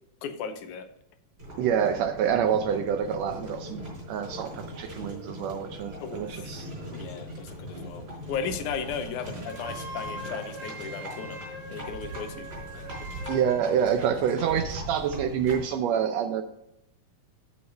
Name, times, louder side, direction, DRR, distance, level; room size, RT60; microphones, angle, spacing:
voice 1, 0.2-0.9 6.0-6.4 6.9-8.0 8.3-11.4 11.7-12.5 12.7-13.1, left 6 dB, 80° left, 8 dB, 2.2 m, -36 dB
Livestock farm animals working animals, 1.4-15.8, equal, 35° right, 4.6 m, -40 dB
voice 2, 1.6-3.8 4.1-6.7 13.3-16.4, right 8 dB, 85° right, 7 dB, 1.5 m, -27 dB
Wind instrument woodwind instrument, 9.4-13.6, equal, 55° right, 3.4 m, -41 dB
7.0 x 6.3 x 5.2 m, 0.82 s
omnidirectional pair, 3.6 m